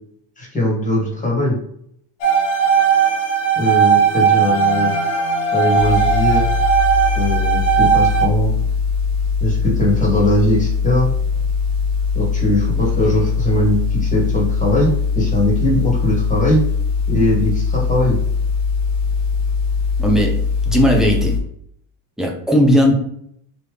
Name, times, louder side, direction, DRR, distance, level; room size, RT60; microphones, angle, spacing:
voice 1, 0.4-1.6 3.5-4.9 5.5-6.5 7.1-8.5 9.4-11.1 12.1-16.6 17.1-18.2, left 1 dB, 15° left, -3 dB, 1.3 m, -20 dB
sound 1, 2.2-8.3, right 7 dB, 70° left, 0.9 m, -17 dB
sound 2, 5.8-21.4, left 5 dB, 35° right, 1.0 m, -20 dB
voice 2, 20.0-20.4 20.7-21.4 22.2-22.9, equal, ahead, 0 dB, 0.4 m, -16 dB
3.2 x 2.6 x 3.4 m, 0.69 s
cardioid pair, 125°, 50 cm